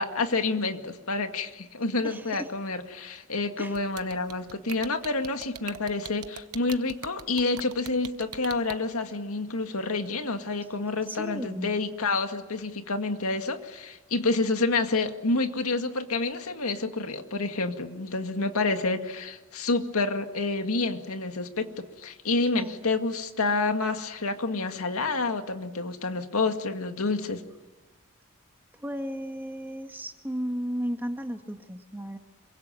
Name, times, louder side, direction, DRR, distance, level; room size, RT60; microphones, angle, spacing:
voice 1, 0.0-27.4, left 3 dB, 85° left, 6 dB, 2.0 m, -28 dB
voice 2, 2.0-2.5 3.6-3.8 11.1-11.7 22.5-22.8 28.8-32.2, equal, 10° right, 5 dB, 1.6 m, -34 dB
sound 1, 3.7-8.7, right 8 dB, 85° right, 1.1 m, -40 dB
26.5 x 24.0 x 9.1 m, 1.1 s
head